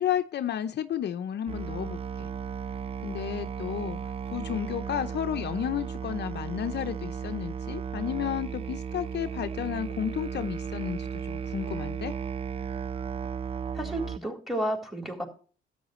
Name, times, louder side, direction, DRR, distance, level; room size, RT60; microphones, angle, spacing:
voice 1, 0.0-2.3 3.0-12.1, left 10 dB, 60° left, 10 dB, 0.7 m, -32 dB
Musical instrument, 1.5-14.2, right 7 dB, 30° right, 0.4 m, -35 dB
voice 2, 13.7-15.2, right 1 dB, ahead, 2 dB, 3.9 m, -32 dB
13.0 x 9.3 x 3.1 m, 0.39 s
cardioid pair, 90°, 20 cm